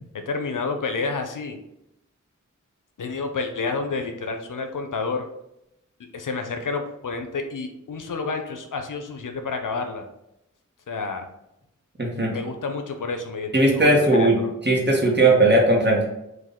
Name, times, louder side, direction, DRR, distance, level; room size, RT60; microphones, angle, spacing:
voice 1, 0.3-1.6 3.0-5.3 6.1-10.0 10.9-11.3 12.3-14.5, left 4 dB, 75° left, 5 dB, 0.6 m, -29 dB
voice 2, 12.0-12.3 13.5-14.4 14.6-16.0, right 2 dB, 35° right, -1 dB, 1.2 m, -18 dB
4.0 x 2.6 x 3.6 m, 0.84 s
wide cardioid pair, 45°, 31 cm